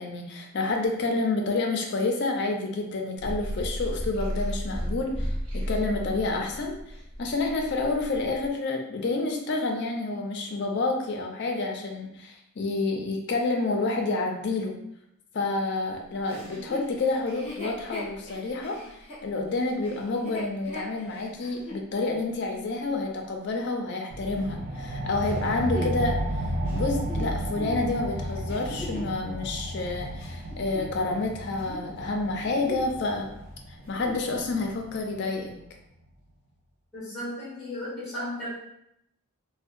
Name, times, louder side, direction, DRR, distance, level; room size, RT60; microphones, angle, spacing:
voice 1, 0.0-14.8 15.3-18.8 19.2-26.2 26.7-33.3 33.9-35.5, left 3 dB, 50° left, 2 dB, 0.4 m, -29 dB
sound 1, 3.2-8.5, equal, 75° right, 0.9 m, -33 dB
Chuckle chortle, 16.3-21.9 22.4-22.5 25.2-29.2 29.8-31.3 31.5-31.9 32.3-33.0 33.3-33.4 33.8-34.3 34.9-35.0, left 1 dB, 25° left, 0.8 m, -40 dB
sound 2, 24.1-35.2, right 1 dB, 40° right, 0.4 m, -33 dB
voice 2, 36.9-38.5, left 1 dB, 5° right, -9 dB, 0.9 m, -35 dB
2.7 x 2.1 x 2.4 m, 0.78 s
head